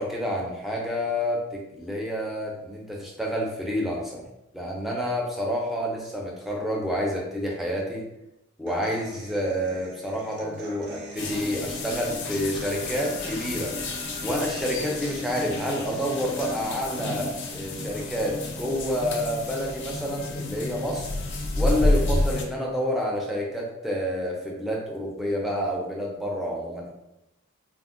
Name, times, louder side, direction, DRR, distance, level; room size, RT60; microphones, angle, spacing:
voice 1, 0.0-4.2 4.5-8.0 8.6-13.7 14.2-21.1 21.5-26.9, equal, ahead, -3 dB, 0.4 m, -29 dB
Human voice / Acoustic guitar, 8.7-16.6, right 1 dB, 55° right, 0.6 m, -43 dB
sound 1, 11.2-22.4, left 2 dB, 55° left, 0.4 m, -30 dB
3.5 x 2.0 x 2.4 m, 0.88 s
head